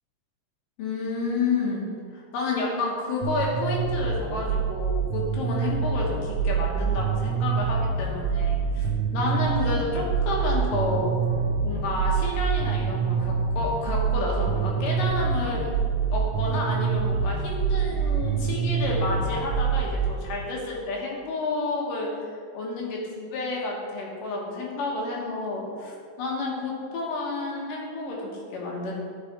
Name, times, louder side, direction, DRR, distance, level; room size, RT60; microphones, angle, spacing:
voice 1, 0.8-1.9 2.1-11.1 11.6-15.7 16.1-22.1 22.5-28.9, left 3 dB, 85° left, -2 dB, 2.9 m, -30 dB
sound 1, 3.2-20.1, right 6 dB, 80° right, 1.6 m, -26 dB
8.7 x 4.8 x 4.3 m, 2.1 s
omnidirectional pair, 3.7 m